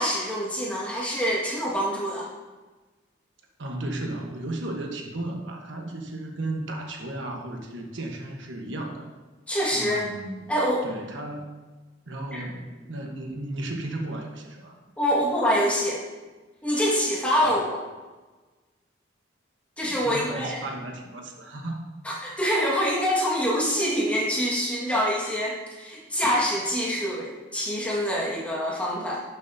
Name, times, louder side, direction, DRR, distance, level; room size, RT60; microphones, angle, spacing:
voice 1, 0.0-2.3 9.5-10.0 10.5-10.8 12.3-12.4 15.0-16.0 16.6-17.8 19.8-20.6 22.0-29.2, equal, 5° left, -5 dB, 1.7 m, -25 dB
voice 2, 3.6-9.1 9.7-10.5 10.8-11.6 12.1-14.8 19.8-21.8, right 1 dB, 75° right, 2 dB, 1.2 m, -34 dB
11.5 x 7.1 x 2.8 m, 1.2 s
head